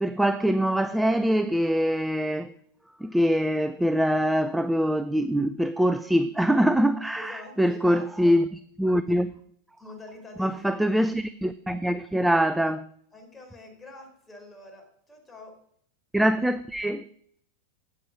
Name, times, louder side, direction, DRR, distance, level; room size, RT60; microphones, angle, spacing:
voice 1, 0.0-2.5 3.0-8.4 8.8-9.3 10.4-12.9 16.1-17.0, equal, 5° right, 0.5 m, -24 dB
voice 2, 7.2-8.3 9.3-9.4 9.8-11.0 13.1-15.6, left 2 dB, 10° left, 4.3 m, -46 dB
12.5 x 9.3 x 6.1 m
figure-of-eight pair, 90°, 0 cm